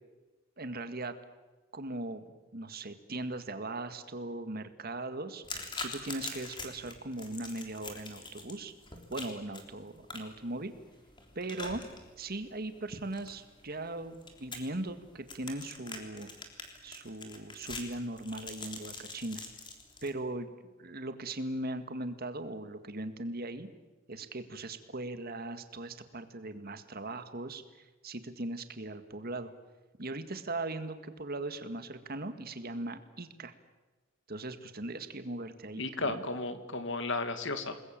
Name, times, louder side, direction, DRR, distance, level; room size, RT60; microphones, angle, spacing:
voice 1, 0.6-1.2 1.7-5.4 5.8-8.7 9.1-10.8 11.4-11.8 12.2-16.3 16.8-19.4 20.0-20.5 20.8-23.7 24.1-29.5 30.0-33.5 34.3-36.2, right 2 dB, 50° right, 9 dB, 1.8 m, -39 dB
sound 1, 5.4-20.1, left 3 dB, 25° left, 3.5 m, -45 dB
voice 2, 35.8-37.8, left 3 dB, 60° left, 9 dB, 2.3 m, -34 dB
28.5 x 21.0 x 7.6 m, 1.2 s
head